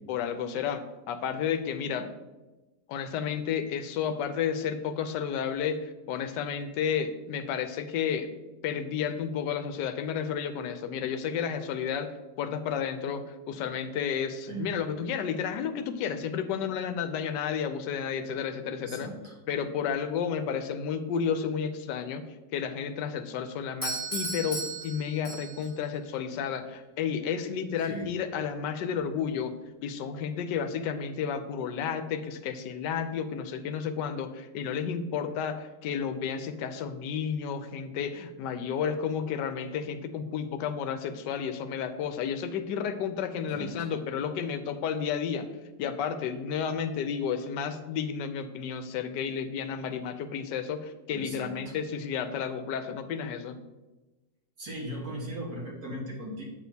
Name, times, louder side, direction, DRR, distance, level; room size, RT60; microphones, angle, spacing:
voice 1, 0.1-2.2 2.9-8.3 8.6-12.1 12.4-19.1 19.5-22.2 22.5-29.6 29.8-45.5 45.8-53.6, left 7 dB, 80° left, 9 dB, 1.2 m, -32 dB
voice 2, 18.8-19.4 27.8-28.1 43.5-43.9 51.1-51.8 54.6-56.4, right 1 dB, 60° right, -3 dB, 2.2 m, -38 dB
Doorbell, 23.8-25.8, right 2 dB, 10° right, 1.7 m, -35 dB
8.0 x 6.2 x 2.7 m, 1.1 s
omnidirectional pair, 1.9 m